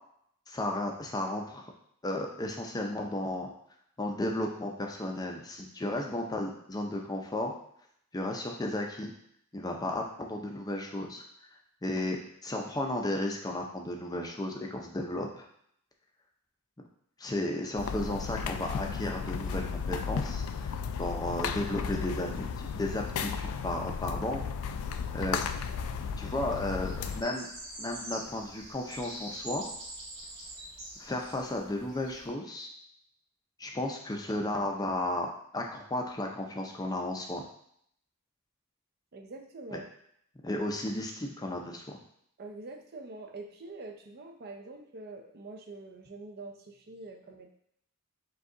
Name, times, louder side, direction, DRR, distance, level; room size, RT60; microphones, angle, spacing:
voice 1, 0.5-1.7 2.0-3.5 4.0-7.5 8.1-9.1 9.5-11.2 11.8-15.4 17.2-24.4 25.1-25.5 26.2-27.5 27.8-29.6 31.0-32.7 33.6-37.4 39.7-39.8 40.4-41.8, left 1 dB, 15° left, 1 dB, 0.5 m, -34 dB
sound 1, 17.8-27.2, left 6 dB, 75° left, 0.3 m, -34 dB
sound 2, 25.6-32.3, right 1 dB, 60° right, 1.8 m, -45 dB
voice 2, 39.1-39.9 42.4-47.5, right 3 dB, 45° right, 4 dB, 0.5 m, -45 dB
5.0 x 2.3 x 3.7 m, 0.70 s
head